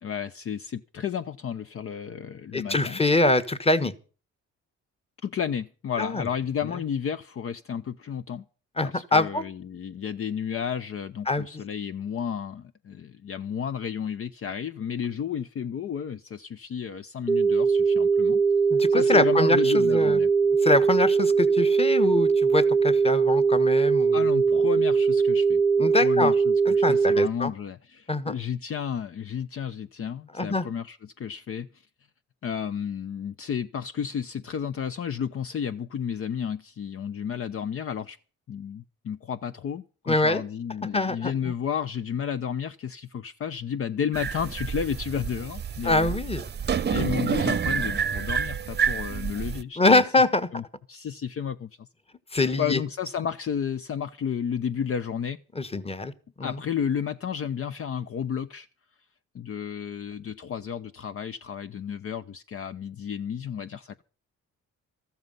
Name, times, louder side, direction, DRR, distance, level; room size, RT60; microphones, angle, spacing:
voice 1, 0.0-3.0 5.2-8.4 8.8-18.4 18.9-20.3 24.1-25.6 26.0-31.7 32.4-38.2 38.5-46.1 46.9-50.0 50.5-50.6 50.9-51.9 52.6-55.4 56.4-58.7 59.3-64.0, left 8 dB, 50° left, 0.7 m, -32 dB
voice 2, 2.5-3.9 6.0-6.3 8.8-9.4 11.3-11.4 18.7-20.2 20.6-24.2 25.8-26.3 26.6-27.5 28.1-28.3 30.3-30.7 40.1-40.4 40.8-41.5 45.8-46.9 49.8-50.5 52.3-52.8 55.5-56.1 56.4-56.6, left 2 dB, 20° left, 1.4 m, -24 dB
sound 1, 17.3-27.3, right 5 dB, ahead, 0.7 m, -21 dB
sound 2, 44.1-49.6, right 7 dB, 35° right, 0.8 m, -28 dB
14.0 x 13.0 x 5.5 m
cardioid pair, 90°, 30 cm